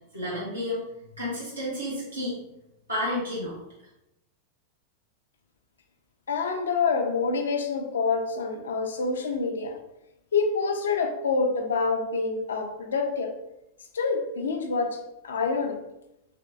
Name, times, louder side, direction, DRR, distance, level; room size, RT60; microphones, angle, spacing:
voice 1, 0.1-0.8 1.2-2.4 2.9-3.6, left 1 dB, 85° right, -9 dB, 1.0 m, -31 dB
voice 2, 6.3-9.8 10.3-13.3 13.9-15.0 15.2-15.8, left 4 dB, 65° left, 4 dB, 0.5 m, -27 dB
4.4 x 3.0 x 2.5 m, 0.87 s
figure-of-eight pair, 90°, 0 cm